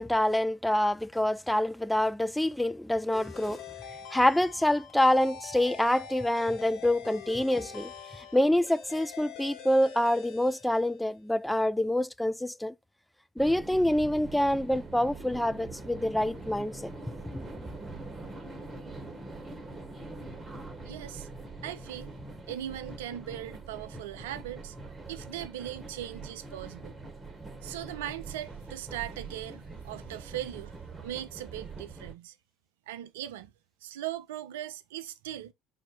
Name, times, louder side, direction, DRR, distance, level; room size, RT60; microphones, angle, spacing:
voice 1, 0.0-3.6 4.1-12.7 13.4-16.9 17.3-17.4, left 1 dB, 5° left, 0.3 m, -26 dB
sound 1, 3.1-11.3, left 7 dB, 60° left, 1.0 m, -45 dB
sound 2, 13.4-32.1, right 3 dB, 25° right, 1.2 m, -43 dB
voice 2, 20.8-21.3 21.6-22.1 22.5-24.8 25.1-27.0 27.6-30.7 31.0-32.3 32.9-33.5 33.8-35.5, right 12 dB, 75° right, 0.5 m, -39 dB
4.3 x 2.7 x 4.0 m
figure-of-eight pair, 65°, 0 cm